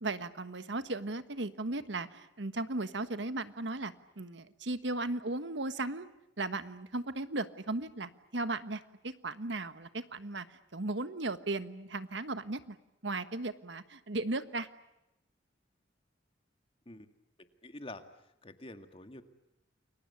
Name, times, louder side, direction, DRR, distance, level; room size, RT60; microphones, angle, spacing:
voice 1, 0.0-6.1 6.4-12.8 13.0-14.7, right 2 dB, 70° right, 11 dB, 1.4 m, -36 dB
voice 2, 17.6-18.0 18.4-19.2, left 2 dB, 30° left, 7 dB, 2.1 m, -46 dB
29.5 x 23.0 x 8.5 m, 0.92 s
head